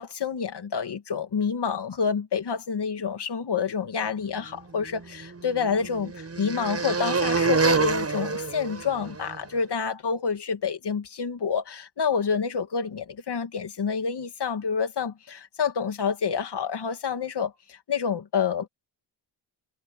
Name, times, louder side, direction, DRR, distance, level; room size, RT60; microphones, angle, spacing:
voice 1, 0.0-18.7, left 6 dB, 60° left, 2.5 m, -28 dB
sound 1, 4.8-9.4, right 4 dB, 30° right, 6.7 m, -27 dB
wide cardioid pair, 120°, 46 cm